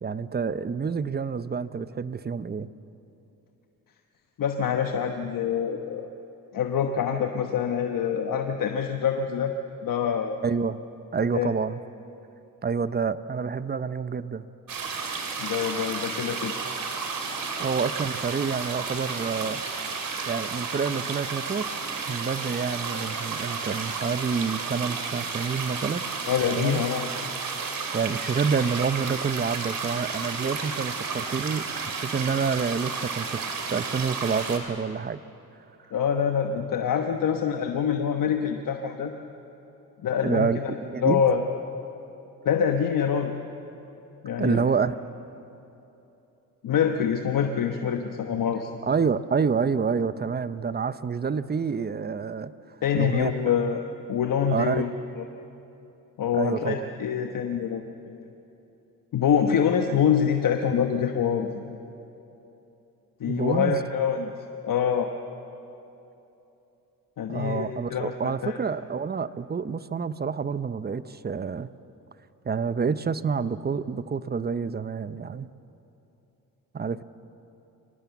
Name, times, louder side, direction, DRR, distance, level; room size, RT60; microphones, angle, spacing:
voice 1, 0.0-2.7 10.4-10.8 11.1-11.8 12.6-14.5 17.6-19.6 20.3-21.7 22.1-26.0 26.6-26.8 27.9-35.2 40.2-41.2 44.4-45.0 48.8-52.5 52.9-53.3 54.5-54.9 56.3-56.8 63.3-63.8 67.3-71.7 72.4-75.5 76.7-77.0, right 5 dB, 30° right, 14 dB, 0.7 m, -28 dB
voice 2, 4.4-6.1 6.5-9.5 9.8-10.4 11.3-11.5 15.4-16.5 26.3-27.1 35.9-39.1 40.0-40.5 41.0-41.4 42.4-43.3 44.2-44.6 46.6-48.7 52.8-53.8 54.1-54.9 55.2-55.3 56.2-58.2 59.1-61.5 63.2-64.3 64.6-65.1 67.2-68.6, left 7 dB, 70° left, 4 dB, 1.2 m, -25 dB
sound 1, 14.7-34.6, right 5 dB, 70° right, 3.0 m, -32 dB
25.0 x 18.5 x 7.2 m, 2.9 s
cardioid pair, 80°, 35 cm